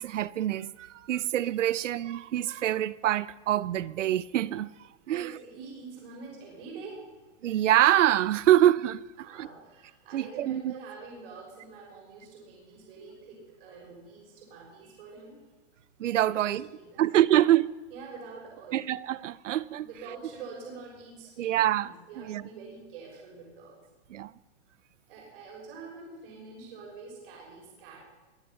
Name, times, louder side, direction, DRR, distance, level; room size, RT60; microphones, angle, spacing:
voice 1, 0.0-4.7 5.1-5.4 7.4-9.5 10.1-10.7 16.0-16.7 17.0-17.7 18.7-19.9 21.4-22.4 24.1-24.3, right 12 dB, 90° right, 0.7 m, -25 dB
voice 2, 5.1-7.0 9.2-15.4 16.3-17.4 17.9-18.9 19.8-23.8 25.1-28.1, right 4 dB, 50° right, 6.6 m, -46 dB
22.5 x 9.8 x 5.7 m
hypercardioid pair, 155°, 36 cm